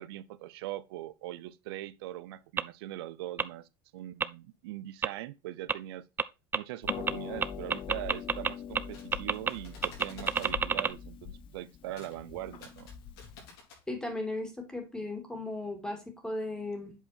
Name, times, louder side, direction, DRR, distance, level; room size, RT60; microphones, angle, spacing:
voice 1, 0.0-6.1 6.5-12.9, right 14 dB, 85° right, 0.5 m, -41 dB
sound 1, 2.6-2.7 3.4-3.5 4.2-4.3 5.0-5.1 5.7-5.8 6.2-6.3 6.5-6.6 6.9-7.1 7.4-8.5 8.7-8.8 9.1-9.5 9.8-10.9, right 6 dB, 15° right, 0.3 m, -27 dB
Harp, 6.8-13.6, left 7 dB, 40° left, 0.8 m, -43 dB
sound 2, 8.7-10.6 11.9-12.2 12.5-13.8, left 4 dB, 85° left, 3.5 m, -51 dB
voice 2, 13.9-16.9, left 2 dB, 5° left, 2.4 m, -36 dB
8.0 x 4.4 x 4.2 m
supercardioid pair, 120°, 13 cm